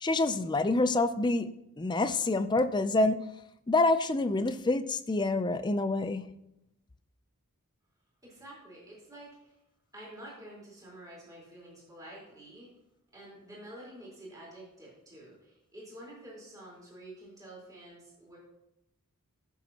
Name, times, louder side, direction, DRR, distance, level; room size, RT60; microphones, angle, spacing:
voice 1, 0.0-1.5 1.8-3.3 3.7-6.3, left 2 dB, 20° left, 0.4 m, -27 dB
voice 2, 8.2-9.5 9.9-12.7 13.1-18.4, right 1 dB, 15° right, 4.1 m, -49 dB
16.5 x 7.3 x 2.9 m
head